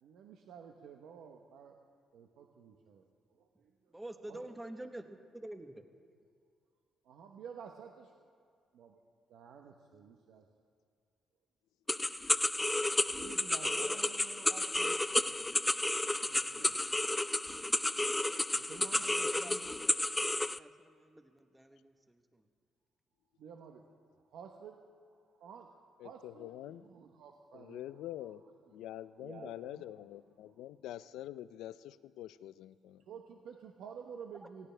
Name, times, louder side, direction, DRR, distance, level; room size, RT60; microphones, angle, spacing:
voice 1, 0.0-1.8 2.1-3.0 3.3-3.9 4.3-5.0 7.0-8.1 8.7-9.0 9.3-10.5 13.2-15.5 16.3-17.0 18.6-19.8 23.4-23.8 24.3-29.9 30.4-30.7 33.0-34.7, right 7 dB, 80° right, 2 dB, 1.0 m, -52 dB
voice 2, 3.9-5.8 19.2-20.2 20.6-22.4, right 1 dB, 10° right, 7 dB, 1.0 m, -48 dB
sound 1, 11.9-20.6, left 2 dB, 10° left, 0.3 m, -32 dB
voice 3, 26.0-26.9 27.5-28.5 28.7-33.0, left 13 dB, 90° left, 16 dB, 0.4 m, -46 dB
18.5 x 16.0 x 3.4 m, 2.3 s
cardioid pair, 90°, 0 cm